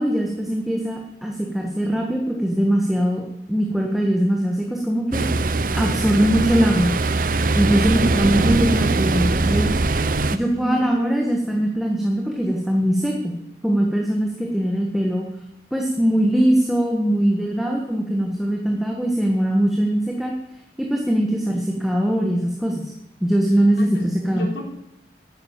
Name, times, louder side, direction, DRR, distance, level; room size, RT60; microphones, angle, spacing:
voice 1, 0.0-3.2 3.5-5.2 5.7-7.0 7.5-9.7 10.3-13.4 13.6-15.3 15.7-20.3 20.9-22.9 23.2-24.5, right 1 dB, ahead, 0 dB, 1.5 m, -21 dB
Ocean, 5.1-10.4, right 3 dB, 50° right, 0.7 m, -21 dB
voice 2, 7.8-8.6 10.5-11.1 23.8-24.6, left 1 dB, 85° left, 0 dB, 3.8 m, -32 dB
11.0 x 9.1 x 9.0 m, 0.81 s
head